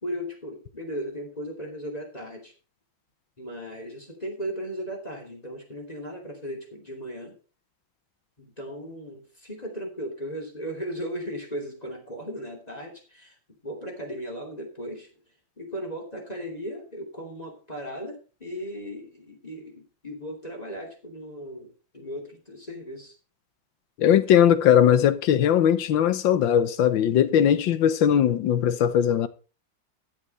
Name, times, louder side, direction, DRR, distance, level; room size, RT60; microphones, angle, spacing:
voice 1, 0.0-2.5 3.4-7.4 8.4-13.4 13.6-15.2 15.6-23.1, equal, 20° left, 2.8 m, -36 dB
voice 2, 24.0-29.3, left 9 dB, 90° left, 1.6 m, -19 dB
13.0 x 8.0 x 4.2 m
omnidirectional pair, 2.0 m